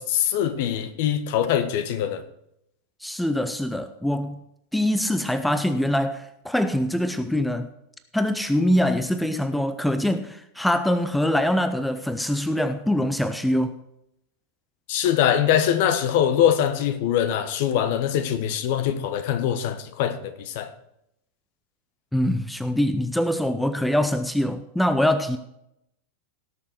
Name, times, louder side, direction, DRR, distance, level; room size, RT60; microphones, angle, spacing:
voice 1, 0.0-2.2 14.9-20.7, left 10 dB, 50° left, 1.1 m, -23 dB
voice 2, 3.0-4.4 4.7-7.7 8.1-13.7 22.1-25.4, left 1 dB, 5° left, 0.6 m, -24 dB
17.5 x 6.7 x 4.6 m
figure-of-eight pair, 90°, 0 cm